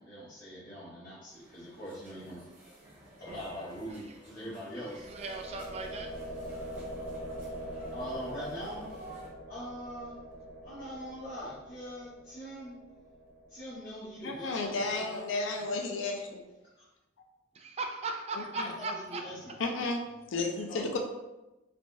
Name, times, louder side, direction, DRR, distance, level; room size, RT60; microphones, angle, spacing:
voice 1, 0.0-2.4 3.2-5.1 7.9-9.0 9.5-10.2 10.6-12.8 13.5-15.2 15.6-15.9 16.8-16.9 18.6-19.6 20.7-20.9, equal, 50° left, -10 dB, 0.9 m, -42 dB
sound 1, 1.3-9.3, right 1 dB, 10° right, 0.8 m, -51 dB
voice 2, 4.8-6.1 17.5-19.2, right 3 dB, 35° right, 3 dB, 0.3 m, -38 dB
sound 2, 4.9-14.8, equal, 85° right, 0.9 m, -44 dB
voice 3, 14.2-16.4 18.6-18.7 19.6-21.0, left 3 dB, 85° left, 3 dB, 0.5 m, -33 dB
3.3 x 2.2 x 2.6 m, 1.0 s
head